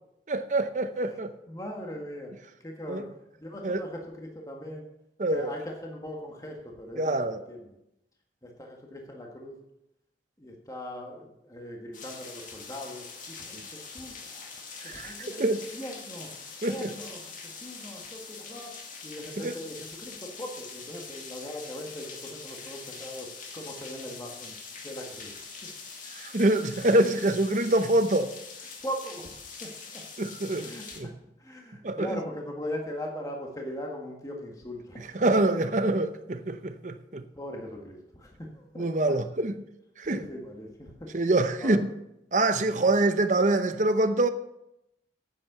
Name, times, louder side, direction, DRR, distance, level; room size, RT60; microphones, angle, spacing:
voice 1, 0.3-1.3 2.9-3.0 3.6-3.8 5.2-5.5 7.0-7.4 13.5-13.7 14.8-15.7 16.6-16.9 19.4-19.6 26.2-28.3 30.2-30.7 31.0-31.1 31.8-32.2 35.1-37.2 38.8-39.5 40.0-40.2 41.1-41.9 42.3-44.3, right 2 dB, 45° right, 0.7 m, -25 dB
voice 2, 1.5-2.3 2.6-3.1 3.4-4.8 5.3-7.7 8.4-9.6 10.4-14.5 14.8-16.3 16.6-18.7 19.0-24.5 24.8-25.4 28.8-30.0 30.6-31.1 31.4-35.1 37.3-39.2 40.1-41.1 41.6-41.8, equal, 20° left, 1.6 m, -40 dB
sound 1, 11.9-31.0, left 5 dB, 45° left, 2.1 m, -43 dB
8.8 x 8.7 x 6.7 m
head